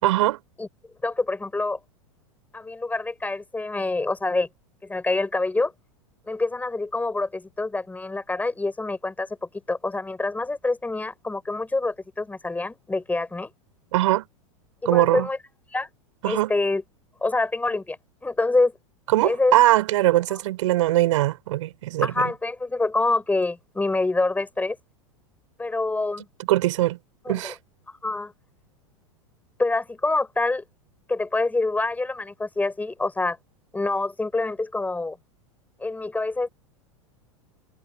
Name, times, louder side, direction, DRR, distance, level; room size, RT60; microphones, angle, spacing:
voice 1, 0.0-0.4 13.9-14.3 14.9-15.3 16.2-16.5 19.1-22.3 26.5-27.0 27.3-27.6, right 16 dB, 60° right, 5.4 m, -21 dB
voice 2, 1.0-1.8 2.5-4.5 4.8-5.7 6.3-13.5 14.8-15.4 15.7-15.9 16.2-16.8 17.2-18.0 18.2-18.7 19.2-19.5 22.0-24.8 25.6-26.3 27.3-27.5 27.9-28.3 29.6-30.6 31.1-33.4 33.7-35.2 35.8-36.5, left 2 dB, 10° left, 5.7 m, -26 dB
figure-of-eight pair, 90°, 18 cm